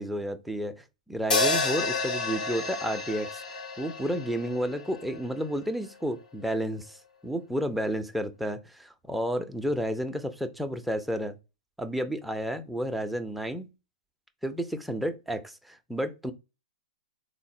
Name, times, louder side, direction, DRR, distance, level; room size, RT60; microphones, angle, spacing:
voice 1, 0.0-11.4 11.8-13.7 14.4-16.3, equal, ahead, 0.4 m, -31 dB
sound 1, 1.3-5.6, left 3 dB, 75° left, 0.7 m, -30 dB
3.7 x 2.0 x 2.6 m
figure-of-eight pair, 110°, 4 cm